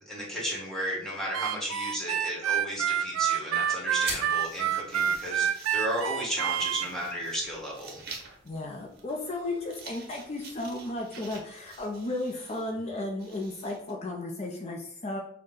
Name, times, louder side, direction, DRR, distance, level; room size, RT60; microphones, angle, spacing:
voice 1, 0.1-8.0, equal, 5° left, -4 dB, 1.4 m, -34 dB
Harmonica, 1.3-6.9, right 9 dB, 90° right, 0.3 m, -28 dB
sound 1, 4.0-13.0, right 2 dB, 30° right, 2.0 m, -47 dB
sound 2, 4.0-13.9, right 4 dB, 55° right, 0.9 m, -49 dB
voice 2, 8.4-15.2, left 2 dB, 35° left, 1 dB, 0.5 m, -34 dB
6.4 x 2.2 x 3.7 m, 0.65 s
head